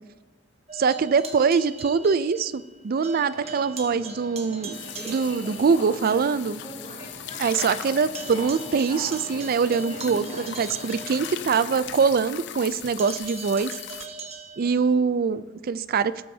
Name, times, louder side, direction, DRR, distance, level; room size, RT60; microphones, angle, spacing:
sound 1, 0.7-2.8 3.0-5.7 6.1-6.2 6.6-6.7 7.0-11.8 13.0-14.9, right 4 dB, 35° right, 1.4 m, -41 dB
voice 1, 0.7-4.7 5.1-6.6 7.4-13.8 14.6-16.1, right 5 dB, 50° right, 15 dB, 0.4 m, -23 dB
Subway metro underground, 3.2-12.1, equal, 35° left, 3.8 m, -42 dB
sound 2, 4.7-14.1, left 10 dB, 65° left, 0.5 m, -39 dB
19.0 x 8.5 x 2.8 m, 1.3 s
head